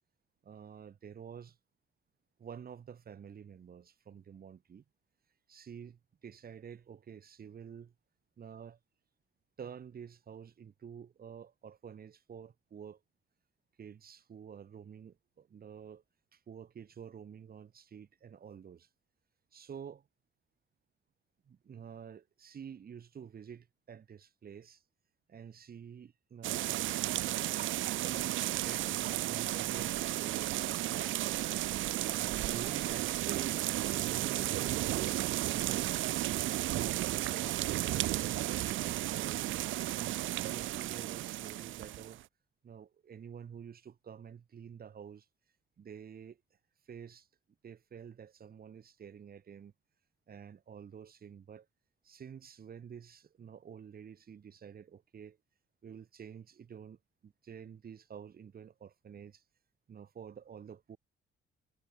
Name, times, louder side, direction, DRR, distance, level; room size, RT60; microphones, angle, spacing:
voice 1, 0.4-1.6 2.4-4.8 5.5-7.9 8.4-8.8 9.6-13.0 13.8-16.0 16.3-18.9 19.5-20.1 21.5-24.8 25.3-27.0 27.8-31.5 32.1-33.7 34.0-37.5 38.0-39.6 40.0-42.2 42.6-45.3 45.8-46.4 46.9-47.3 47.6-49.7 50.3-51.7 52.0-55.4 55.8-59.4 59.9-61.0, right 7 dB, 50° right, 2.5 m, -49 dB
sound 1, 26.4-42.2, right 15 dB, 75° right, 0.6 m, -33 dB
cardioid pair, 90°, 20 cm